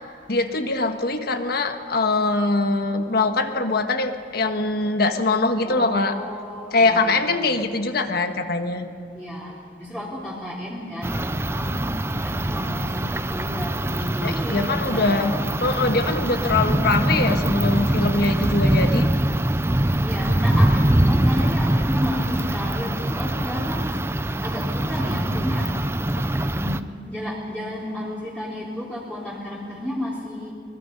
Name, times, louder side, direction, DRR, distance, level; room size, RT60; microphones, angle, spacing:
voice 1, 0.3-6.2 6.7-8.9 14.2-15.3 15.6-19.1, left 3 dB, 60° left, 6 dB, 1.6 m, -22 dB
voice 2, 5.6-7.8 9.2-15.5 20.0-24.0 24.4-25.7 26.5-26.8 27.1-30.5, left 1 dB, 5° left, -7 dB, 3.4 m, -32 dB
sound 1, 11.0-26.8, right 1 dB, 15° right, 0.6 m, -23 dB
24.0 x 21.0 x 5.3 m, 2.4 s
head